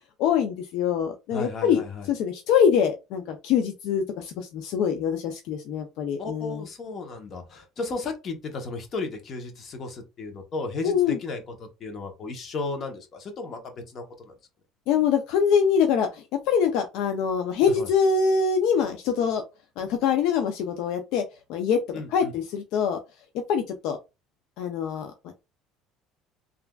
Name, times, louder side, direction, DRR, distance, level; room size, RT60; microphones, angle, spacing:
voice 1, 0.2-1.8 2.1-6.6 10.8-11.2 14.9-19.4 19.8-21.2 21.5-21.8 22.1-23.0 23.3-24.0 24.6-25.1, left 7 dB, 70° left, 0.4 m, -24 dB
voice 2, 1.3-2.1 6.2-14.3 17.7-17.9 21.9-22.3, left 3 dB, 40° left, 0.8 m, -34 dB
3.2 x 2.4 x 2.2 m
cardioid pair, 135°, 0 cm